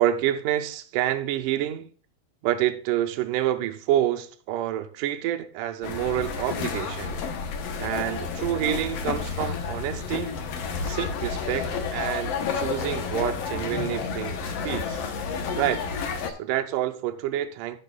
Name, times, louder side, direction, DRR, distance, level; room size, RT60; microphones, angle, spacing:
voice 1, 0.0-1.9 2.4-7.1 7.8-10.3 10.8-15.0 15.6-15.8 16.3-17.8, right 12 dB, 80° right, 1.9 m, -28 dB
sound 1, 5.8-16.3, left 5 dB, 85° left, 1.4 m, -30 dB
15.5 x 6.7 x 2.3 m
omnidirectional pair, 4.4 m